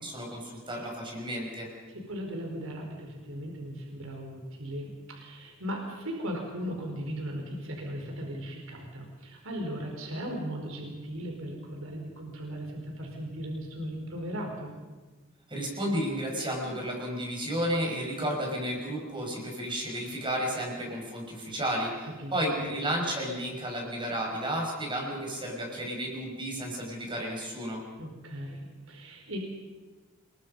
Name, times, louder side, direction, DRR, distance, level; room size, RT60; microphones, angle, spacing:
voice 1, 0.0-1.7 15.5-27.8, equal, 25° right, 0 dB, 5.6 m, -32 dB
voice 2, 1.9-14.8 22.2-22.3 22.6-22.8 28.0-29.4, equal, 70° right, 1 dB, 4.6 m, -37 dB
28.0 x 22.0 x 5.5 m, 1.3 s
head